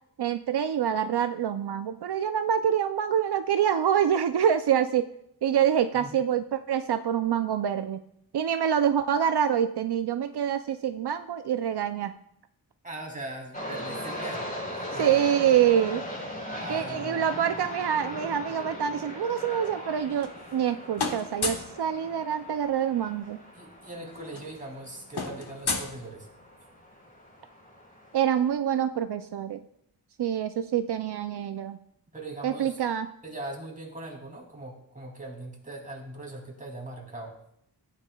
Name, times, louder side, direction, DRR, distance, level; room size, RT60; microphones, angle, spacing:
voice 1, 0.2-5.1 5.4-8.0 8.3-12.1 14.9-16.0 16.7-23.4 28.1-29.6 30.2-31.8 32.4-33.1, right 9 dB, 75° right, 9 dB, 0.5 m, -26 dB
voice 2, 12.8-14.5 14.9-15.2 16.6-17.3 23.5-26.3 32.1-32.8 33.2-37.4, right 2 dB, 20° right, 0 dB, 2.6 m, -40 dB
sound 1, 13.5-28.5, equal, 20° left, 3.9 m, -39 dB
sound 2, 19.9-20.7 20.9-21.8 23.1-23.2 23.5-23.7 24.0-26.6, left 4 dB, 75° left, 1.3 m, -34 dB
14.0 x 9.1 x 2.3 m, 0.74 s
wide cardioid pair, 70°, 39 cm